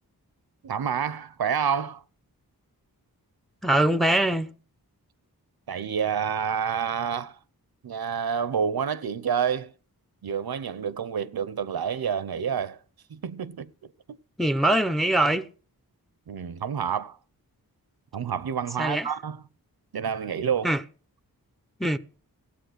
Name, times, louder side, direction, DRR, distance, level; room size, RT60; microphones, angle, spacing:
voice 1, 0.6-2.0 5.7-7.4 7.8-9.7 10.2-12.8 13.1-13.7 14.1-14.2 16.3-17.2 18.1-19.4 19.9-20.7, right 7 dB, 80° right, 0.8 m, -28 dB
voice 2, 3.6-4.5 14.4-15.5 18.8-19.1 20.6-20.8 21.8-22.0, right 1 dB, ahead, 0.8 m, -22 dB
16.5 x 8.8 x 6.4 m
wide cardioid pair, 100°, 37 cm